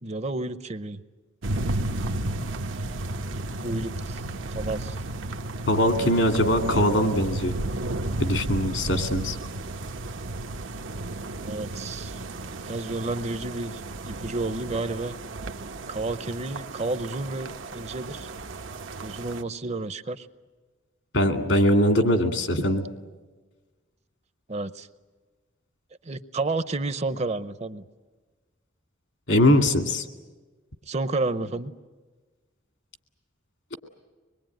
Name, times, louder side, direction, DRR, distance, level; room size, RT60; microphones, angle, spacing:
voice 1, 0.0-1.0 3.6-4.2 4.5-5.0 11.4-12.1 12.7-15.2 15.9-18.3 19.0-20.3 24.5-24.9 26.0-27.8 30.9-31.7, right 2 dB, 35° right, 12 dB, 0.7 m, -31 dB
sound 1, 1.4-19.4, right 2 dB, 85° right, 1.0 m, -33 dB
voice 2, 5.7-7.5 8.2-9.4 21.1-22.8 29.3-30.0, left 1 dB, 75° left, 5 dB, 2.3 m, -21 dB
25.0 x 22.0 x 9.1 m, 1.3 s
head